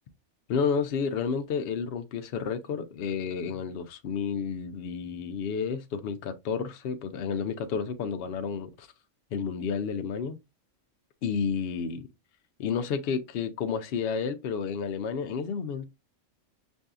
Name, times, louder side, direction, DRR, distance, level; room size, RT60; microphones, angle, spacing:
voice 1, 0.5-8.9 9.3-10.4 11.2-12.1 12.6-15.8, left 6 dB, 60° left, 0.7 m, -31 dB
6.1 x 2.6 x 2.3 m
omnidirectional pair, 1.3 m